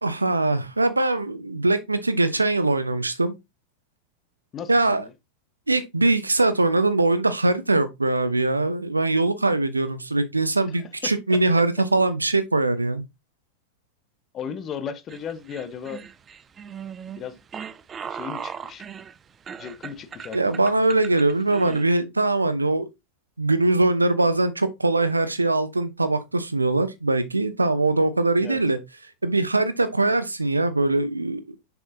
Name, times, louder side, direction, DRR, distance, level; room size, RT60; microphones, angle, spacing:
voice 1, 0.0-3.3 4.7-5.0 5.7-13.0 20.3-22.9 23.4-28.8 29.2-31.6, right 2 dB, 80° right, 0.8 m, -22 dB
voice 2, 4.5-5.1 10.7-10.8 11.3-11.4 14.3-16.0 17.2-17.4 18.1-18.8 19.5-20.4 28.4-28.6, left 7 dB, 30° left, 1.2 m, -35 dB
sound 1, 15.1-21.8, right 7 dB, 20° right, 0.5 m, -38 dB
6.8 x 6.0 x 2.7 m
figure-of-eight pair, 90°, 0 cm